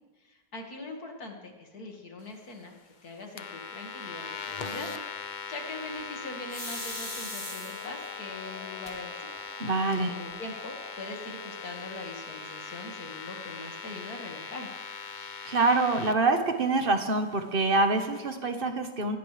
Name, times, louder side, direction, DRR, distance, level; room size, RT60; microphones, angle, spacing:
voice 1, 0.2-9.3 10.1-14.7, left 2 dB, 60° left, 2 dB, 2.5 m, -42 dB
sound 1, 3.4-16.1, left 5 dB, 40° left, 0.7 m, -40 dB
sound 2, 6.5-8.1 8.9-9.0 9.4-9.5 9.7-10.3, left 1 dB, 10° left, 2.5 m, -39 dB
sound 3, 7.2-12.1, left 1 dB, 85° right, 5.5 m, -51 dB
voice 2, 9.6-10.1 15.4-19.2, right 3 dB, 35° right, 6 dB, 1.4 m, -25 dB
20.0 x 16.5 x 3.4 m, 1.3 s
omnidirectional pair, 1.8 m